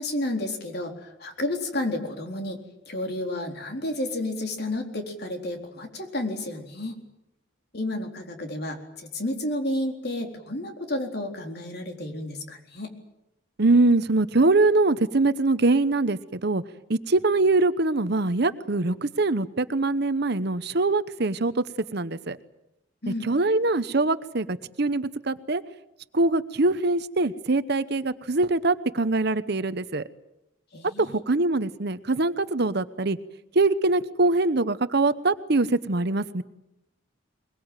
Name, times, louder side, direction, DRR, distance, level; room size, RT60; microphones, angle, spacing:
voice 1, 0.0-2.6 2.9-7.0 7.7-12.9 23.0-23.3 30.7-31.2, left 1 dB, 55° left, 3 dB, 4.0 m, -31 dB
voice 2, 13.6-16.6 16.9-21.6 21.9-22.4 23.2-25.6 26.1-30.0 31.0-33.2 33.5-36.4, right 2 dB, 55° right, 13 dB, 0.9 m, -23 dB
22.5 x 22.0 x 9.1 m, 0.87 s
head